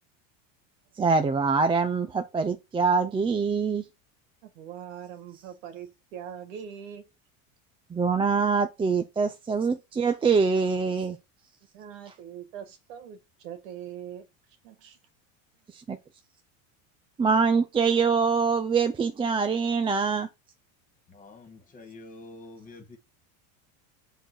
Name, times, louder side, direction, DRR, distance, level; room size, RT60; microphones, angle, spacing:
voice 1, 1.0-3.9 7.9-11.2 15.7-16.0 17.2-20.3, right 5 dB, 15° right, 0.6 m, -24 dB
voice 2, 4.4-7.1 11.7-14.3 14.6-15.0, right 9 dB, 90° right, 2.1 m, -42 dB
voice 3, 21.1-23.0, left 2 dB, 20° left, 2.2 m, -47 dB
7.8 x 4.1 x 6.3 m
supercardioid pair, 140°, 38 cm